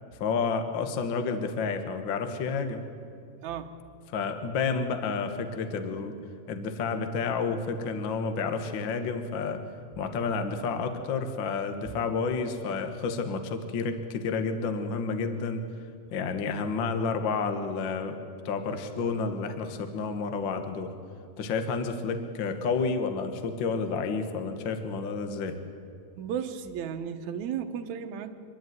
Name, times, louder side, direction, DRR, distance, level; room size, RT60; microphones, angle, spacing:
voice 1, 0.2-2.8 4.1-6.1 6.5-9.6 10.0-15.6 16.1-18.2 18.4-20.9 21.4-25.6, left 4 dB, 60° left, 7 dB, 1.2 m, -30 dB
voice 2, 3.4-3.7 26.2-28.3, right 8 dB, 65° right, 6 dB, 2.0 m, -34 dB
25.5 x 11.0 x 9.4 m, 2.4 s
omnidirectional pair, 4.1 m